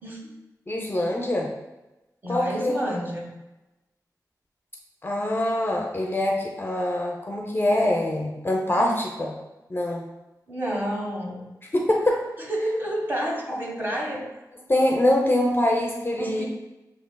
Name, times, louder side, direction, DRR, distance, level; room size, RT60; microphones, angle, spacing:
voice 1, 0.7-1.5 2.3-2.8 5.0-9.3 9.7-10.0 11.7-12.3 13.5-13.6 14.7-16.4, left 1 dB, 30° left, -1 dB, 0.5 m, -24 dB
voice 2, 2.2-3.3 8.8-9.0 10.5-11.4 12.4-14.2 16.2-16.4, equal, 30° right, -2 dB, 1.1 m, -29 dB
6.8 x 2.8 x 2.2 m, 1.0 s
wide cardioid pair, 95°, 7 cm